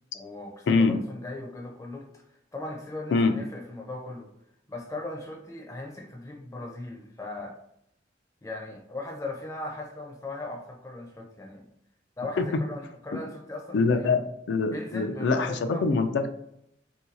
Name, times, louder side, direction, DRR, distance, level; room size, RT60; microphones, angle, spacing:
voice 1, 0.1-4.3 4.7-7.6 8.4-11.7 12.2-14.1 14.7-15.8, left 2 dB, 15° left, 0 dB, 0.5 m, -38 dB
voice 2, 0.7-1.0 3.1-3.3 12.4-12.5 13.1-13.2 13.7-16.3, left 4 dB, 75° left, 8 dB, 0.4 m, -24 dB
2.7 x 2.3 x 3.9 m, 0.76 s
head